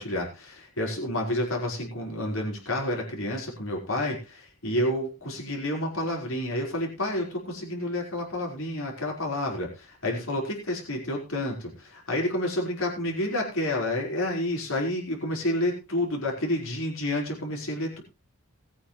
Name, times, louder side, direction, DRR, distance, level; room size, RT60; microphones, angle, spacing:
voice 1, 0.0-18.0, left 1 dB, 80° left, -1 dB, 5.0 m, -29 dB
20.5 x 9.1 x 3.3 m, 0.29 s
head